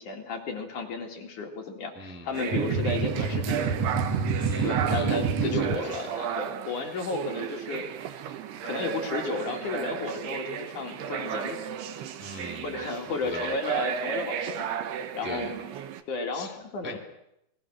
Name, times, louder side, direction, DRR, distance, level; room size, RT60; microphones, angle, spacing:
voice 1, 0.0-3.9 4.6-7.8 8.6-11.6 12.6-14.7 15.1-15.7 16.1-17.0, left 3 dB, 55° left, 2 dB, 3.4 m, -33 dB
voice 2, 1.9-2.4 4.4-5.8 12.2-12.8 13.2-13.6 15.2-15.5 16.3-16.5 16.8-17.0, left 2 dB, 5° right, 2 dB, 2.2 m, -40 dB
sound 1, 2.3-16.0, right 8 dB, 80° right, 3.3 m, -34 dB
sound 2, 2.5-5.7, right 5 dB, 55° right, 1.9 m, -27 dB
29.5 x 21.5 x 6.3 m, 0.81 s
omnidirectional pair, 4.7 m